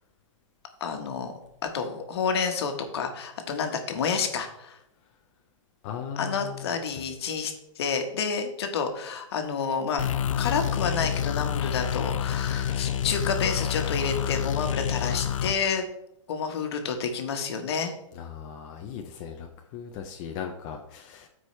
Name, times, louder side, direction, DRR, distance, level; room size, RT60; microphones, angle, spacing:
voice 1, 0.8-1.3 1.7-4.8 6.2-10.1 10.4-15.9 16.3-17.9, left 6 dB, 50° left, 5 dB, 1.3 m, -29 dB
voice 2, 5.8-6.7 18.1-21.3, left 7 dB, 20° left, 2 dB, 0.4 m, -38 dB
sound 1, 10.0-15.6, left 9 dB, 75° left, 0.5 m, -28 dB
12.5 x 4.7 x 3.2 m, 0.80 s
hypercardioid pair, 165°, 17 cm